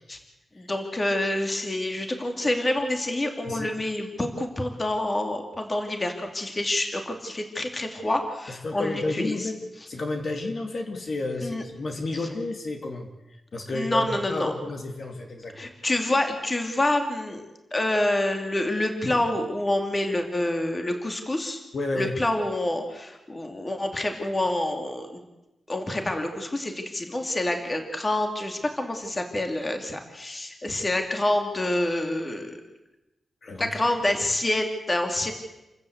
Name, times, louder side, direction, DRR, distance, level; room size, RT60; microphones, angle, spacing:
voice 1, 0.6-9.4 11.4-11.6 13.7-14.5 15.5-17.4 17.7-21.6 22.0-25.2 25.7-32.6 33.6-35.3, left 1 dB, 25° left, 4 dB, 2.7 m, -27 dB
voice 2, 8.5-9.6 9.9-15.7 19.1-19.2 21.7-22.2 33.4-33.7, left 2 dB, 55° left, 3 dB, 2.8 m, -31 dB
28.5 x 15.0 x 8.2 m, 0.98 s
wide cardioid pair, 130°, 0 cm